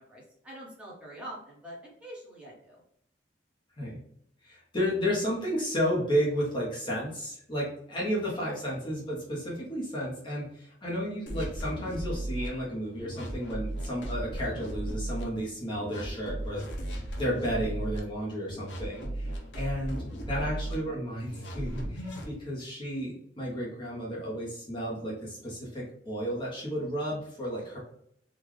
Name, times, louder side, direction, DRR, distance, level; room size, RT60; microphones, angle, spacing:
voice 1, 0.0-2.8 8.8-9.1 20.6-20.7, right 1 dB, 5° right, -5 dB, 1.2 m, -45 dB
voice 2, 4.4-27.8, equal, 30° left, -5 dB, 0.9 m, -32 dB
sound 1, 11.3-12.5 13.0-15.2 15.7-18.0 18.5-20.8 21.2-22.3, right 1 dB, 80° left, 0.8 m, -36 dB
3.8 x 2.4 x 3.1 m, 0.68 s
head